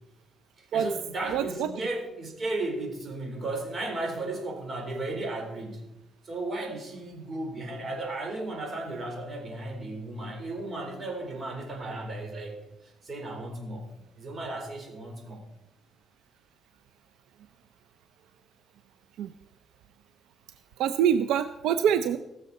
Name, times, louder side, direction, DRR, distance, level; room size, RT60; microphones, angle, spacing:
voice 1, 0.6-5.9 6.2-12.6 12.8-13.9 14.2-15.5, right 2 dB, 40° right, 2 dB, 3.9 m, -35 dB
voice 2, 1.3-1.7 19.2-19.3 20.8-22.2, right 8 dB, 90° right, 10 dB, 0.5 m, -25 dB
19.5 x 6.8 x 4.2 m, 0.90 s
cardioid pair, 90°, 0 cm